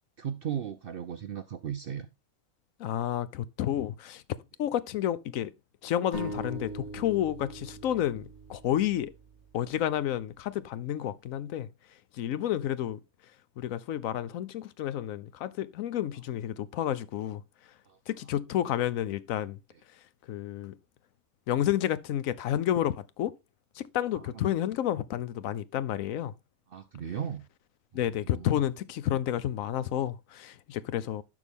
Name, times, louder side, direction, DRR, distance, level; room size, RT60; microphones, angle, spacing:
voice 1, 0.2-2.1 17.9-18.0 24.1-24.4 26.7-27.4 27.9-28.6, right 8 dB, 65° right, 0.5 m, -37 dB
voice 2, 2.8-4.2 4.6-5.5 5.8-9.1 9.5-11.7 12.2-13.0 13.6-17.4 18.1-19.6 20.3-20.8 21.5-23.3 23.8-26.3 27.9-31.2, left 11 dB, 70° left, 1.0 m, -30 dB
sound 1, 6.1-9.7, right 1 dB, 30° left, 3.5 m, -41 dB
11.0 x 5.9 x 3.5 m
omnidirectional pair, 1.5 m